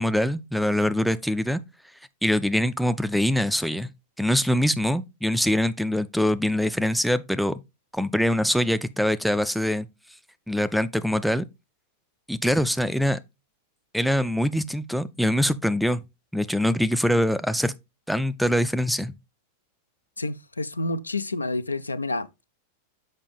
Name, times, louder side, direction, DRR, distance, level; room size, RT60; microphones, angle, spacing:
voice 1, 0.0-1.6 2.2-3.9 4.2-7.6 7.9-9.9 10.5-11.5 12.3-13.2 13.9-16.0 16.3-17.7 18.1-19.1, equal, ahead, 0.4 m, -23 dB
voice 2, 20.2-22.5, left 2 dB, 80° left, 0.4 m, -29 dB
6.5 x 5.2 x 3.4 m
figure-of-eight pair, 90°, 0 cm